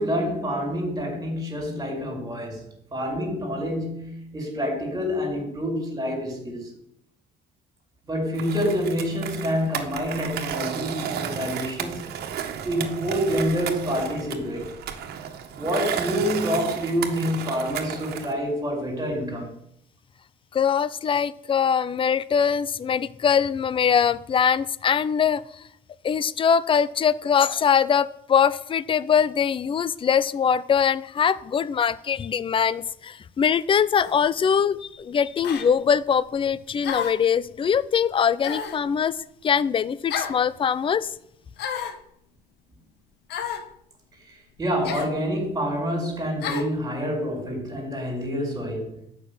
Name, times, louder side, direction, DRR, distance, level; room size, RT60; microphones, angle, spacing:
voice 1, 0.0-6.7 8.0-12.0 12.6-14.7 15.5-19.5 44.6-49.0, equal, 20° right, 5.2 m, -27 dB
Skateboard, 8.3-18.3, right 8 dB, 70° right, 1.6 m, -33 dB
voice 2, 20.5-25.4 26.0-39.1 39.4-41.1, left 7 dB, 30° left, 0.6 m, -22 dB
sound 1, 34.0-34.2 35.4-35.7 36.8-37.3 38.4-38.8 40.1-40.4 41.6-42.0 43.3-43.7 44.8-45.1 46.4-46.7, left 8 dB, 75° left, 1.6 m, -31 dB
12.0 x 6.2 x 9.4 m
cardioid pair, 110°, 17 cm